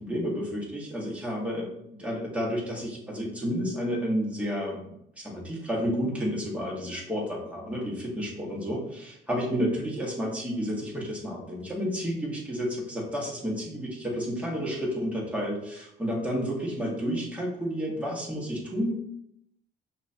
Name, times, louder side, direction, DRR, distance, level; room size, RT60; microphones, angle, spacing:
voice 1, 0.0-18.9, equal, 5° right, -4 dB, 1.8 m, -31 dB
5.9 x 2.8 x 2.9 m, 0.75 s
cardioid pair, 90°, 20 cm